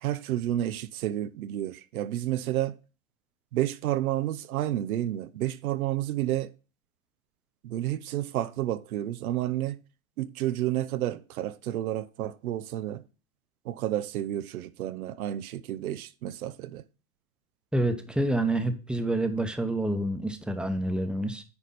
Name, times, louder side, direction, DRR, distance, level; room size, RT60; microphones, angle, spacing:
voice 1, 0.0-2.8 3.5-6.5 7.6-9.8 10.2-13.0 13.6-16.8, right 13 dB, 90° right, 0.7 m, -30 dB
voice 2, 17.7-21.4, right 1 dB, ahead, 0.9 m, -28 dB
9.7 x 4.9 x 4.1 m
supercardioid pair, 125°, 42 cm